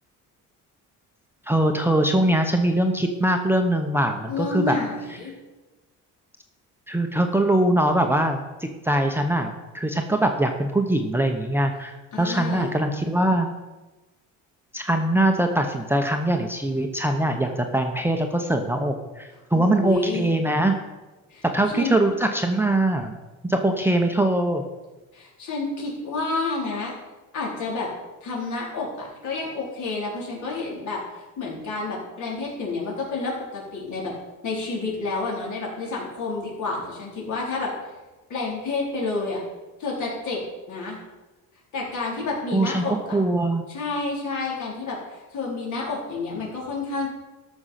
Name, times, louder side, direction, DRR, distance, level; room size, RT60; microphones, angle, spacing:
voice 1, 1.5-4.8 6.9-13.5 14.7-20.8 21.5-23.2 23.4-24.6 42.5-43.6, right 1 dB, 5° right, 4 dB, 0.8 m, -22 dB
voice 2, 4.3-5.4 12.1-12.7 19.5-20.3 21.3-21.5 21.7-22.0 25.1-26.9 27.3-27.9 28.2-34.1 34.4-37.7 38.3-39.4 39.8-40.4 40.7-41.0 41.7-43.2 43.7-47.1, left 3 dB, 60° left, -3 dB, 4.2 m, -29 dB
13.5 x 6.2 x 5.7 m, 1.1 s
cardioid pair, 135°, 33 cm